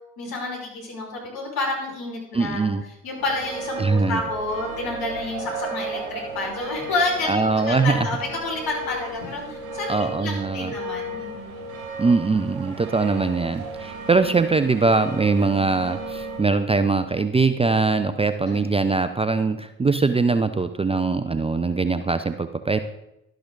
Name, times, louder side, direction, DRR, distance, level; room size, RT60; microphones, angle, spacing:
voice 1, 0.2-2.7 3.0-11.5 18.4-18.7, left 2 dB, 55° left, -2 dB, 5.5 m, -29 dB
voice 2, 2.3-2.8 3.8-4.2 7.2-8.1 9.9-10.7 12.0-22.8, right 4 dB, 15° right, 10 dB, 0.6 m, -22 dB
sound 1, 3.2-16.5, right 2 dB, 75° right, 2.4 m, -35 dB
12.0 x 12.0 x 4.0 m, 0.85 s
hypercardioid pair, 55°, 42 cm